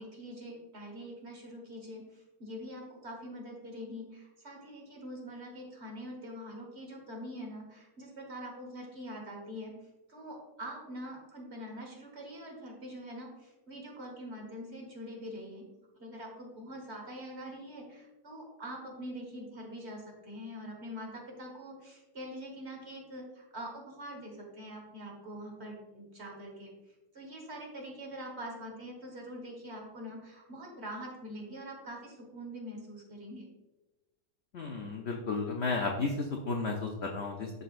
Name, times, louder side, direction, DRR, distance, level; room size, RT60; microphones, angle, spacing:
voice 1, 0.0-9.8 10.1-15.6 16.0-26.7 27.1-33.5, equal, 40° right, 0 dB, 1.6 m, -44 dB
voice 2, 34.5-37.5, left 3 dB, 70° left, 1 dB, 0.6 m, -33 dB
11.5 x 4.0 x 2.5 m, 1.1 s
omnidirectional pair, 1.9 m